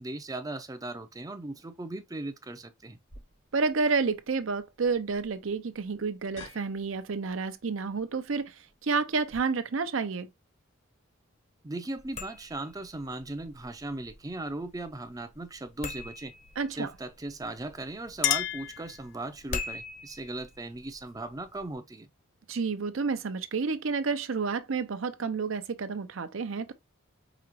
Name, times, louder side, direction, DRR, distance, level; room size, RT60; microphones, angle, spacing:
voice 1, 0.0-3.0 11.6-16.3 16.7-22.1, right 2 dB, 20° right, 0.5 m, -38 dB
sound 1, 3.1-9.4, left 2 dB, 80° left, 2.1 m, -54 dB
voice 2, 3.5-8.5 8.8-10.3 16.6-16.9 22.5-26.7, right 4 dB, 70° right, 0.6 m, -30 dB
sound 2, 12.0-21.7, left 3 dB, 35° left, 0.8 m, -44 dB
Chink clink, 17.7-19.5, left 13 dB, 60° left, 0.4 m, -32 dB
5.0 x 2.9 x 2.8 m
head